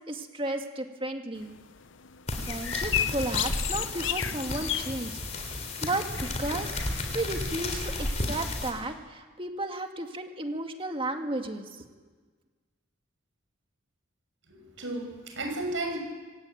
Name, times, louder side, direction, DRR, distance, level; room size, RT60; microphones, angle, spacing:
voice 1, 0.1-1.5 2.5-5.2 5.8-6.7 7.1-11.6, right 2 dB, 25° right, 5 dB, 2.0 m, -33 dB
sound 1, 1.4-8.1, left 10 dB, 60° left, 0.7 m, -35 dB
sound 2, 2.3-8.7, left 2 dB, 35° left, 3.6 m, -33 dB
voice 2, 14.5-16.0, right 2 dB, 65° right, 3 dB, 6.7 m, -33 dB
25.5 x 16.0 x 9.3 m, 1.4 s
head